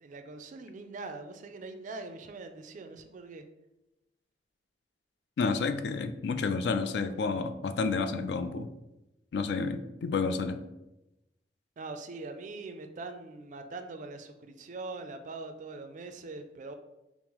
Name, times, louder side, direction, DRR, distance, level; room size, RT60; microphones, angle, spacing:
voice 1, 0.0-3.4 11.8-16.7, right 3 dB, 45° right, 7 dB, 0.3 m, -42 dB
voice 2, 5.4-8.7 9.3-10.6, left 4 dB, 65° left, 8 dB, 0.3 m, -30 dB
5.3 x 2.0 x 2.9 m, 0.95 s
head